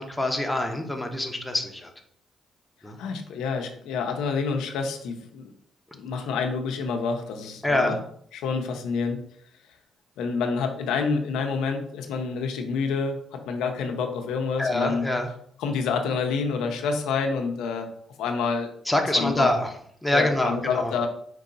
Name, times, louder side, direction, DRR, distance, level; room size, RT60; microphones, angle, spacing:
voice 1, 0.0-1.9 2.8-3.0 7.6-8.0 14.6-15.3 18.9-19.7 20.0-20.9, left 1 dB, 10° left, 3 dB, 0.8 m, -25 dB
voice 2, 3.0-5.5 5.9-8.0 8.3-9.2 10.2-15.1 15.6-17.9 18.2-18.7 19.1-19.5 20.1-21.1, left 5 dB, 90° left, 4 dB, 0.6 m, -28 dB
4.6 x 2.7 x 3.9 m, 0.65 s
cardioid pair, 90°, 0 cm